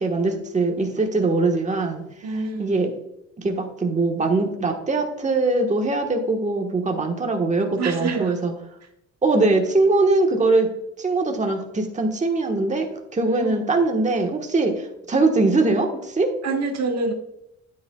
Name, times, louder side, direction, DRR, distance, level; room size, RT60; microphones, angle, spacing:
voice 1, 0.0-2.0 2.6-2.9 3.4-8.5 9.2-10.7 11.0-12.9 13.1-16.3, right 3 dB, 25° right, 3 dB, 1.3 m, -21 dB
voice 2, 2.2-2.8 7.8-8.3 13.2-13.6 16.4-17.1, right 3 dB, 60° right, 3 dB, 1.3 m, -26 dB
9.2 x 9.0 x 2.3 m, 0.81 s
cardioid pair, 90°, 30 cm